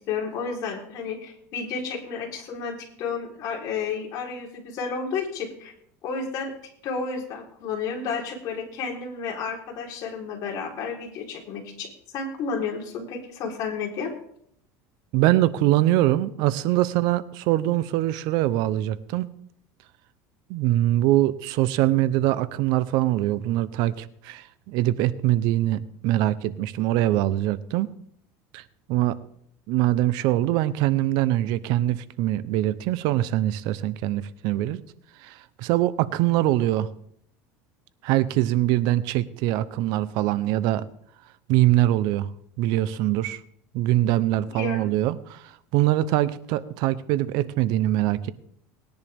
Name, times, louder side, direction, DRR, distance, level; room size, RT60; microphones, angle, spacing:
voice 1, 0.1-5.7 6.0-6.5 6.8-14.1 44.5-44.8, left 5 dB, 55° left, 0 dB, 3.9 m, -31 dB
voice 2, 15.1-19.3 20.5-27.9 28.5-28.6 28.9-29.2 29.7-34.8 35.2-36.9 38.0-40.9 41.5-42.3 42.6-43.4 43.7-48.3, right 15 dB, 65° right, 16 dB, 0.7 m, -23 dB
20.0 x 10.5 x 3.5 m, 0.68 s
supercardioid pair, 130°, 8 cm